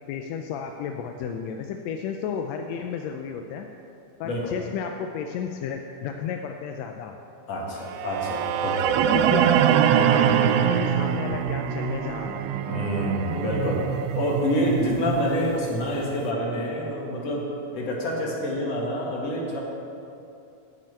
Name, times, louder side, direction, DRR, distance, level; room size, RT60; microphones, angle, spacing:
voice 1, 0.1-3.7 4.2-7.2 9.1-12.5, left 7 dB, 80° left, 4 dB, 1.7 m, -33 dB
voice 2, 7.5-9.4 12.7-13.9 14.2-17.4 17.7-19.6, equal, 60° left, -3 dB, 3.0 m, -27 dB
sound 1, 7.9-16.0, right 9 dB, 90° right, 1.3 m, -24 dB
10.0 x 6.6 x 8.8 m, 2.7 s
omnidirectional pair, 3.3 m